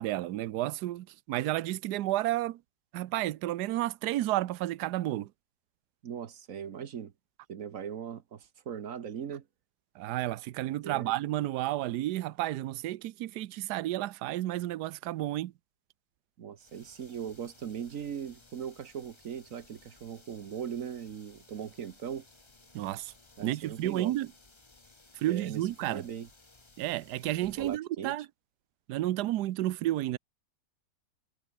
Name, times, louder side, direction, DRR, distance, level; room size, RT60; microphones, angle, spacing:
voice 1, 0.0-2.6 2.9-5.3 10.0-15.5 22.7-23.1 23.4-24.3 25.2-26.0 26.8-28.3 28.9-30.2, right 15 dB, 75° right, 1.2 m, -31 dB
voice 2, 6.0-7.1 7.5-9.4 10.7-11.1 16.4-22.3 23.4-24.1 25.3-26.3 27.6-28.2, right 8 dB, 55° right, 1.3 m, -39 dB
sound 1, 16.6-27.8, left 3 dB, 20° left, 1.2 m, -59 dB
omnidirectional pair, 1.8 m